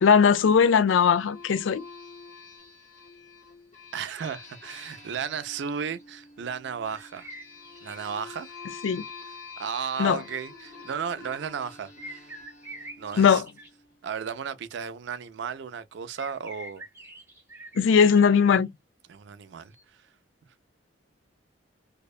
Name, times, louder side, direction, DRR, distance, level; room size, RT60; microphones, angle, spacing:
voice 1, 0.0-1.8 8.8-9.0 10.0-10.2 13.2-13.4 17.8-18.7, left 6 dB, 75° left, 0.3 m, -19 dB
sound 1, 0.8-14.1, left 4 dB, 35° left, 1.0 m, -47 dB
sound 2, 2.6-2.7 4.5-4.7 5.5-5.6 6.0-6.3 6.9-8.8 9.2-9.4 10.4-11.6 11.9-13.7 16.2-18.4 19.7-19.8, right 1 dB, 15° right, 0.6 m, -46 dB
voice 2, 3.9-7.3 7.8-8.5 9.6-12.3 13.0-13.4 14.0-16.8 19.1-20.0, right 7 dB, 60° right, 0.4 m, -34 dB
2.7 x 2.1 x 2.3 m
head